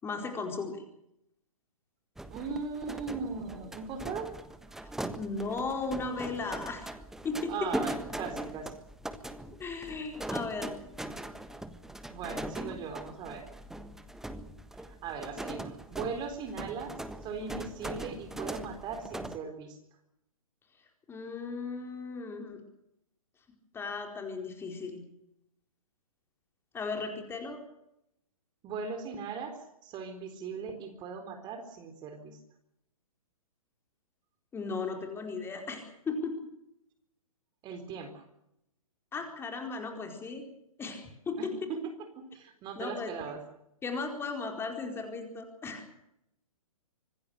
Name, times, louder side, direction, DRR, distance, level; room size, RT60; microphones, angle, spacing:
voice 1, 0.0-0.8 5.2-6.9 7.2-7.7 9.6-10.7 21.1-22.6 23.7-25.0 26.7-27.6 34.5-36.4 39.1-40.5 40.8-41.7 42.8-43.1 43.8-45.9, left 4 dB, 15° left, 4 dB, 4.5 m, -36 dB
sound 1, 2.2-19.4, right 1 dB, ahead, 1.4 m, -40 dB
voice 2, 2.3-4.4 7.5-8.7 12.1-13.5 14.9-16.9 17.2-19.8 28.6-32.4 37.6-38.2 41.4-41.8 42.3-43.4, right 5 dB, 25° right, 7 dB, 4.0 m, -39 dB
26.0 x 19.5 x 6.7 m, 0.80 s
figure-of-eight pair, 125°, 18 cm